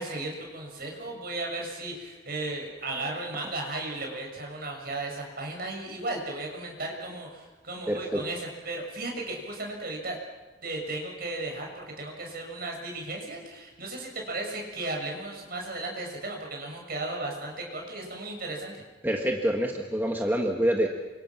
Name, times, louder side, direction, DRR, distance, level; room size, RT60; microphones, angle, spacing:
voice 1, 0.0-10.2 10.6-18.7, right 2 dB, 50° right, 1 dB, 6.9 m, -35 dB
voice 2, 7.9-8.2 19.0-20.9, equal, 10° right, 1 dB, 1.7 m, -26 dB
28.5 x 26.0 x 6.1 m, 1.2 s
head